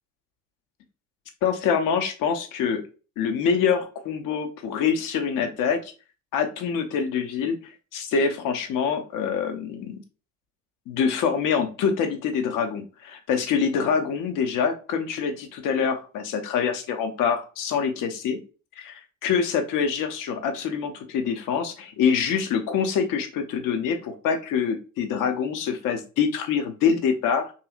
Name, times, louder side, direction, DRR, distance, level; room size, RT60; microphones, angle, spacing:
voice 1, 1.4-2.8 3.2-5.9 6.3-10.0 10.9-18.4 18.8-27.5, left 6 dB, 50° left, 7 dB, 0.7 m, -25 dB
2.9 x 2.7 x 2.3 m, 0.35 s
figure-of-eight pair, 55°, 40 cm